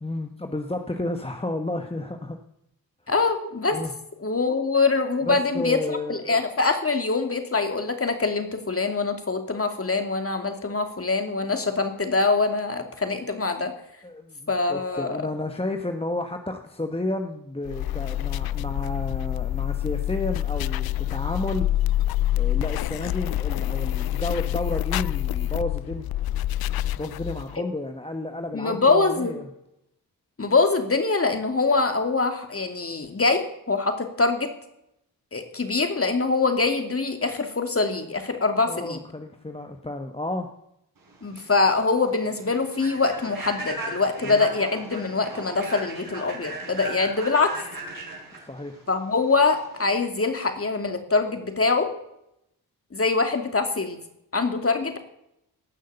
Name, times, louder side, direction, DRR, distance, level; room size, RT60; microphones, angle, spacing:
voice 1, 0.0-2.4 3.7-3.9 5.2-6.4 14.0-21.7 22.3-26.1 27.0-29.5 38.6-40.5 44.2-44.5 48.4-48.8, left 2 dB, 15° left, 5 dB, 1.3 m, -31 dB
voice 2, 3.1-3.8 4.2-5.8 6.1-13.7 14.5-15.2 28.5-29.4 30.4-34.5 35.3-39.0 41.2-47.5 48.9-51.9 52.9-54.0 54.3-55.0, left 3 dB, 35° left, 6 dB, 2.6 m, -24 dB
sound 1, 17.6-27.6, left 13 dB, 65° left, 0.5 m, -27 dB
Human voice / Train, 41.1-49.9, right 2 dB, 55° right, 4.7 m, -37 dB
18.0 x 6.4 x 6.9 m, 0.80 s
supercardioid pair, 50°, 40 cm